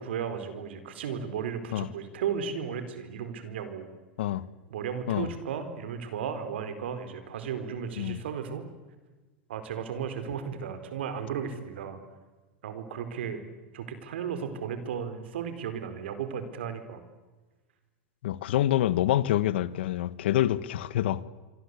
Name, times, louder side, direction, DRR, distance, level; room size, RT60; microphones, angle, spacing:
voice 1, 0.0-3.9 4.7-8.6 9.5-12.0 12.6-13.4 13.7-17.0, right 7 dB, 80° right, 4.5 m, -35 dB
voice 2, 18.2-21.2, left 13 dB, 75° left, 1.4 m, -26 dB
26.0 x 24.5 x 8.4 m
supercardioid pair, 125°, 6 cm